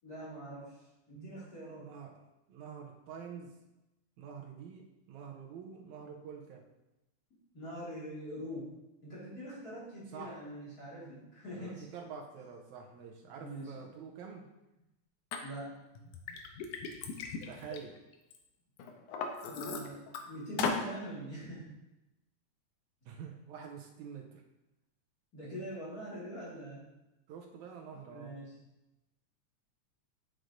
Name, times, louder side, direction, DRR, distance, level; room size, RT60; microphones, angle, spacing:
voice 1, 0.0-0.7 1.1-1.9 7.5-8.7 9.0-11.9 13.4-13.8 15.4-15.8 19.4-21.7 25.3-26.9 27.9-28.6, right 1 dB, 35° left, -8 dB, 2.0 m, -43 dB
voice 2, 1.8-2.2 2.5-3.5 4.2-6.7 10.1-10.4 11.5-14.5 17.5-18.0 23.1-24.4 27.3-28.4, right 6 dB, 80° right, 2 dB, 1.9 m, -47 dB
Liquid, 15.3-15.4 16.0-18.4 18.8-20.2 20.6-20.9, left 5 dB, 85° left, 2.1 m, -37 dB
8.9 x 6.2 x 2.6 m, 0.97 s
omnidirectional pair, 3.5 m